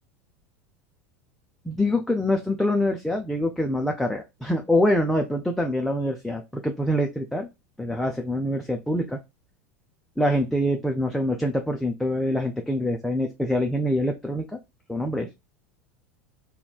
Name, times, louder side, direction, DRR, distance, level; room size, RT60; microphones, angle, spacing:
voice 1, 1.7-7.5 7.8-9.2 10.2-14.4 14.9-15.3, left 1 dB, 5° left, 2 dB, 0.4 m, -25 dB
3.0 x 2.2 x 2.4 m, 0.23 s
figure-of-eight pair, 80°, 7 cm